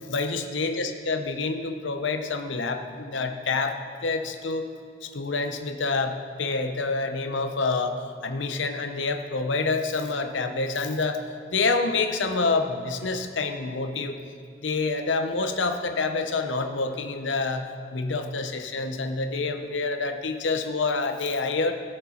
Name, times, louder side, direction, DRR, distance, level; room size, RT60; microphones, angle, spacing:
voice 1, 0.1-4.7 5.0-11.2 11.5-14.2 14.6-17.7 17.9-21.7, left 3 dB, 85° left, 6 dB, 0.8 m, -27 dB
17.0 x 6.6 x 4.3 m, 2.3 s
head